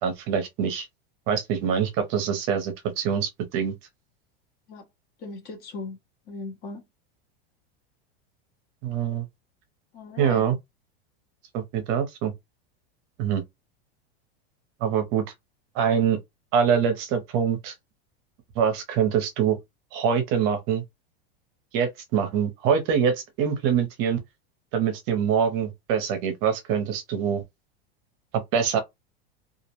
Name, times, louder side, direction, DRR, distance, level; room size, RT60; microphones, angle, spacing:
voice 1, 0.0-0.9 1.3-3.7 8.8-9.2 10.2-10.5 11.5-12.3 13.2-13.4 14.8-15.2 15.7-16.2 16.5-17.7 18.6-19.6 19.9-20.8 21.7-24.2 24.7-27.4 28.5-28.8, right 7 dB, 40° right, 0.6 m, -24 dB
voice 2, 5.2-6.0 6.3-6.8 9.9-10.5, left 3 dB, 30° left, 0.8 m, -38 dB
2.3 x 2.0 x 3.0 m
supercardioid pair, 150°, 30 cm